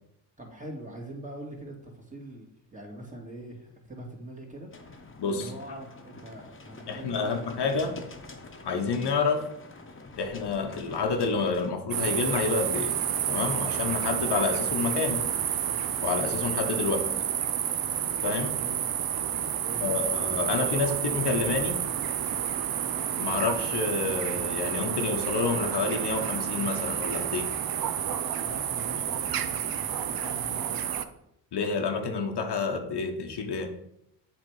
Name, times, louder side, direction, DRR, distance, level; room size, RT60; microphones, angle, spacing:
voice 1, 0.4-4.7 5.3-8.0 18.4-18.8 19.6-20.1 28.4-30.9, right 1 dB, 15° right, 0 dB, 2.1 m, -43 dB
sound 1, 4.7-11.7, left 3 dB, 25° left, 1.1 m, -46 dB
voice 2, 5.2-5.5 6.9-8.0 8.6-9.4 10.2-13.0 13.3-15.3 16.0-17.1 18.2-18.5 19.8-21.8 23.2-27.5 31.5-33.7, left 4 dB, 60° left, 4 dB, 1.0 m, -29 dB
sound 2, 11.9-31.0, right 9 dB, 50° right, 0.7 m, -30 dB
7.7 x 3.5 x 4.7 m, 0.79 s
cardioid pair, 65°, 45 cm